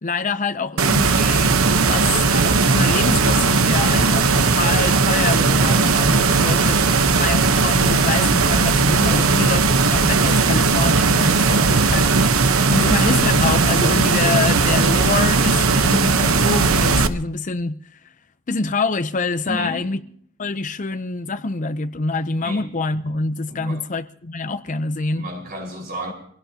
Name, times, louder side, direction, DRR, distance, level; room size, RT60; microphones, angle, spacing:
voice 1, 0.0-6.8 7.1-12.1 12.7-18.0 18.5-20.0 20.4-25.3, left 3 dB, 35° left, 0.6 m, -25 dB
sound 1, 0.8-17.1, right 4 dB, 75° right, 1.0 m, -17 dB
voice 2, 6.2-6.7 9.0-9.3 11.3-12.0 12.7-13.0 19.4-20.0 22.4-22.7 23.5-23.8 25.1-26.1, equal, 45° right, 4.8 m, -33 dB
25.5 x 17.0 x 2.8 m
head